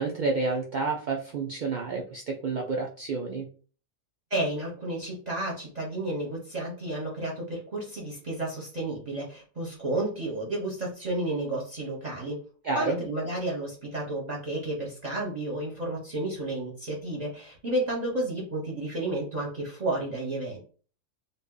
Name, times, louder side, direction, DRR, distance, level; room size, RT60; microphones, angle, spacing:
voice 1, 0.0-3.5 12.6-13.0, right 3 dB, 85° right, 1 dB, 0.4 m, -29 dB
voice 2, 4.3-12.4 12.7-20.6, right 2 dB, 35° right, -4 dB, 0.8 m, -32 dB
2.7 x 2.3 x 3.7 m, 0.40 s
omnidirectional pair, 1.4 m